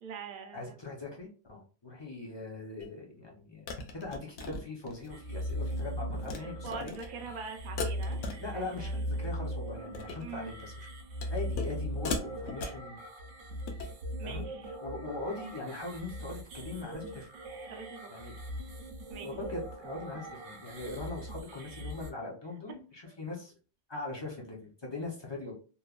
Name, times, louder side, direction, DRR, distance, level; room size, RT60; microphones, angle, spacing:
voice 1, 0.0-0.8 6.6-8.2 8.5-9.0 10.2-10.5 14.2-14.7 17.6-18.1 19.1-19.4 23.1-23.2, right 6 dB, 60° right, 5 dB, 0.5 m, -43 dB
voice 2, 0.5-6.9 8.4-10.9 11.3-13.0 14.2-14.4 14.8-17.3 18.1-18.4 19.2-23.5 23.9-25.6, left 3 dB, 35° left, -2 dB, 0.4 m, -41 dB
sound 1, 2.8-2.9 3.7-5.2 5.5-5.8 6.1-6.4 6.7-7.1 7.8-8.8 9.1-9.4 9.8-10.3 11.2-11.8 12.1-12.9 13.5-13.9, left 3 dB, 70° left, 0.9 m, -38 dB
sound 2, 5.1-22.1, equal, 75° right, 1.0 m, -39 dB
3.0 x 2.2 x 2.3 m, 0.37 s
omnidirectional pair, 1.3 m